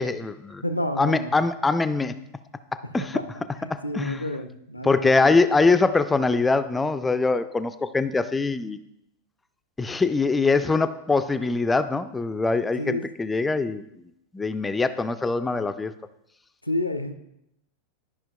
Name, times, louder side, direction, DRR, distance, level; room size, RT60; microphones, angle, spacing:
voice 1, 0.0-0.6 1.0-2.2 2.9-3.2 3.7-4.2 4.8-8.8 9.8-13.8 14.3-15.9, left 3 dB, 10° left, 12 dB, 0.3 m, -23 dB
voice 2, 0.6-1.3 3.0-3.3 3.6-5.1 12.8-13.1 16.6-17.1, left 1 dB, 85° left, 9 dB, 0.5 m, -29 dB
12.0 x 5.6 x 2.2 m, 0.81 s
figure-of-eight pair, 90°, 0 cm